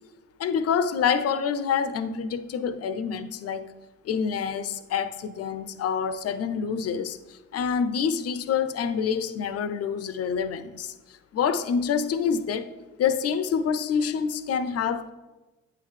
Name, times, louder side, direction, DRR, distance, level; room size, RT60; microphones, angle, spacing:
voice 1, 0.4-3.7 4.0-10.9 11.3-12.7 13.0-15.1, left 7 dB, 45° left, 0.5 m, -27 dB
9.0 x 3.8 x 3.2 m
hypercardioid pair, 55°, 36 cm